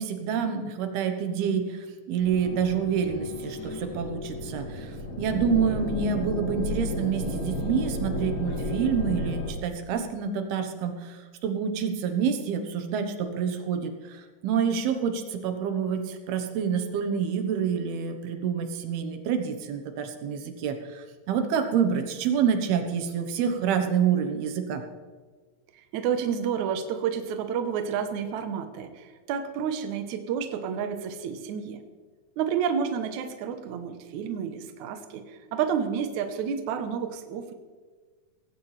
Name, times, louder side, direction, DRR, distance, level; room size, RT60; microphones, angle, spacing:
voice 1, 0.0-1.8 2.1-4.9 5.2-11.2 11.4-24.8, right 7 dB, 85° right, 7 dB, 3.1 m, -27 dB
sound 1, 2.2-9.5, left 2 dB, 40° left, 2.6 m, -33 dB
voice 2, 25.7-31.8 32.4-37.5, right 7 dB, 65° right, 7 dB, 2.1 m, -30 dB
18.0 x 16.0 x 3.3 m, 1.4 s
omnidirectional pair, 4.4 m